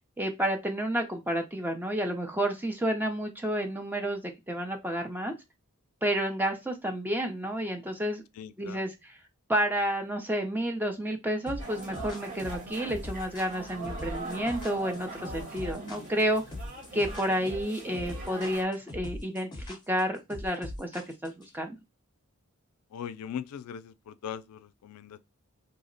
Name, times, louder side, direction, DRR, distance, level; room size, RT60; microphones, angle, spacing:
voice 1, 0.2-5.3 6.0-8.2 8.6-9.2 9.5-16.4 16.9-21.8, equal, 10° right, 0.5 m, -30 dB
voice 2, 8.4-8.8 22.9-25.2, left 8 dB, 90° left, 0.3 m, -40 dB
sound 1, 11.5-21.5, left 1 dB, 20° left, 0.9 m, -40 dB
sound 2, 11.6-18.6, right 2 dB, 45° right, 1.2 m, -42 dB
2.8 x 2.1 x 3.8 m
head